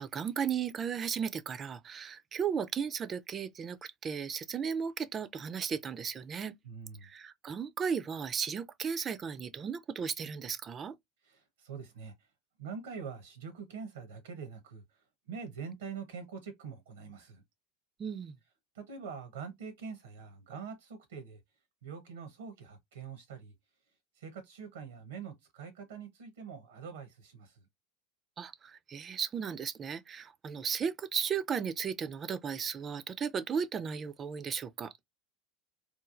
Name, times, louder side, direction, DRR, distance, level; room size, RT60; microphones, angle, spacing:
voice 1, 0.0-6.5 7.0-11.0 18.0-18.3 28.4-34.9, right 7 dB, 30° right, 0.3 m, -35 dB
voice 2, 6.6-7.1 11.2-12.3 12.6-17.4 18.7-21.4 21.8-23.5 24.1-27.7, right 6 dB, 85° right, 0.7 m, -44 dB
3.0 x 2.3 x 2.4 m
hypercardioid pair, 90°, 0 cm